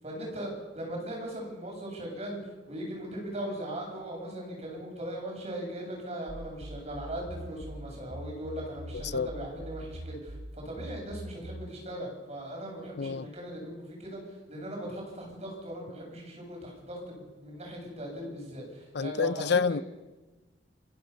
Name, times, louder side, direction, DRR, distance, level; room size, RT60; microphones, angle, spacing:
voice 1, 0.0-2.4 2.7-14.2 14.5-19.8, right 1 dB, 35° right, 8.0 m, -39 dB
sound 1, 6.3-11.7, right 1 dB, 90° right, 1.2 m, -43 dB
voice 2, 18.9-19.8, left 5 dB, 65° left, 0.6 m, -27 dB
29.0 x 15.5 x 7.0 m
head